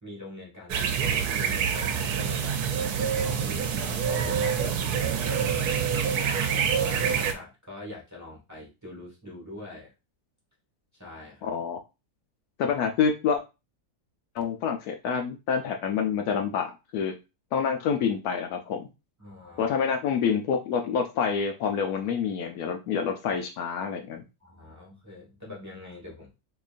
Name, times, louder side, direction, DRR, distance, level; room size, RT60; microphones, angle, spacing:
voice 1, 0.0-2.6 3.0-5.7 6.0-9.9 10.9-11.5 19.2-19.8 24.4-26.4, left 2 dB, 10° right, -5 dB, 1.2 m, -43 dB
sound 1, 0.7-7.3, right 7 dB, 75° right, 1.1 m, -26 dB
voice 2, 11.4-11.8 12.6-13.4 14.3-17.1 17.5-18.9 19.6-24.2, left 6 dB, 75° left, 5 dB, 1.0 m, -27 dB
3.8 x 3.0 x 2.4 m, 0.27 s
omnidirectional pair, 1.7 m